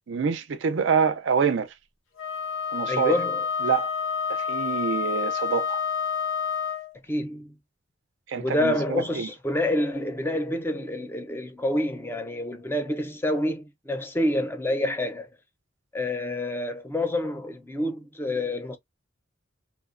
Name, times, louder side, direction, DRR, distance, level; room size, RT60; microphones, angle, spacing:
voice 1, 0.1-1.7 2.7-3.1 3.6-3.9 4.3-5.8 8.3-9.3, right 6 dB, 70° right, 0.4 m, -26 dB
Wind instrument woodwind instrument, 2.2-6.9, left 6 dB, 90° left, 0.7 m, -28 dB
voice 2, 2.9-3.4 7.1-7.5 8.3-15.3 15.9-18.8, left 1 dB, 10° left, 0.5 m, -28 dB
2.8 x 2.0 x 2.4 m
head